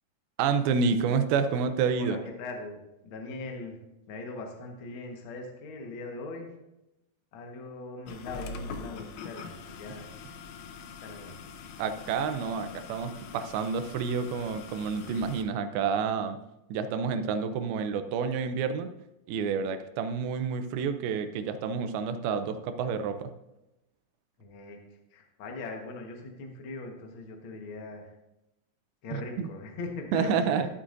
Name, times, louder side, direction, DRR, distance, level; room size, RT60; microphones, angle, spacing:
voice 1, 0.4-2.2 11.8-16.4 16.7-18.9 19.3-23.3 29.1-29.5 30.1-30.7, right 6 dB, 85° right, 9 dB, 2.6 m, -29 dB
voice 2, 2.0-3.8 4.1-6.5 7.3-10.2 11.0-11.4 24.4-28.1 29.0-30.5, left 3 dB, 60° left, 2 dB, 1.4 m, -41 dB
sound 1, 8.1-15.4, left 5 dB, 90° left, 1.6 m, -43 dB
13.5 x 8.4 x 2.6 m, 0.92 s
omnidirectional pair, 4.2 m